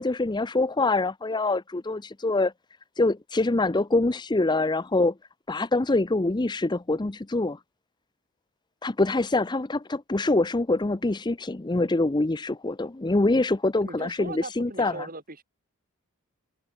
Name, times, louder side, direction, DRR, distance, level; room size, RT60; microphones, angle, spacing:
voice 1, 0.0-2.5 3.0-5.1 5.5-7.6 8.8-15.1, left 2 dB, 20° left, 0.6 m, -25 dB
voice 2, 13.8-15.4, right 2 dB, 40° right, 5.9 m, -39 dB
head